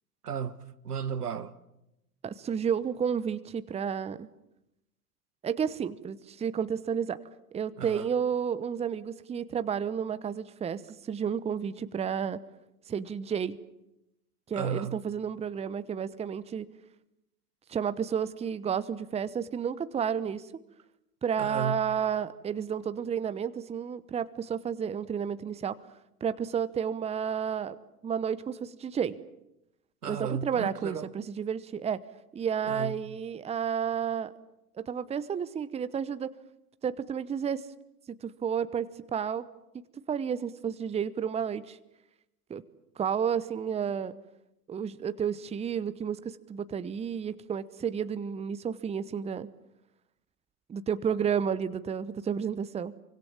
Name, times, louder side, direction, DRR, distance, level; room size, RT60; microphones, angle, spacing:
voice 1, 0.2-0.6 0.8-1.5 7.8-8.1 14.5-15.0 21.4-21.9 30.0-31.1 32.6-33.0, right 7 dB, 80° right, 1.5 m, -34 dB
voice 2, 2.2-4.3 5.4-7.2 7.5-12.4 12.9-13.6 14.5-16.7 17.7-20.4 21.2-25.8 26.2-27.8 28.0-29.2 30.1-32.0 32.3-34.3 34.8-36.3 36.8-37.6 38.1-39.5 40.1-41.8 42.5-42.6 43.0-44.1 44.7-49.5 50.7-52.9, right 7 dB, 15° right, 0.9 m, -31 dB
26.5 x 24.5 x 7.3 m
figure-of-eight pair, 90°, 46 cm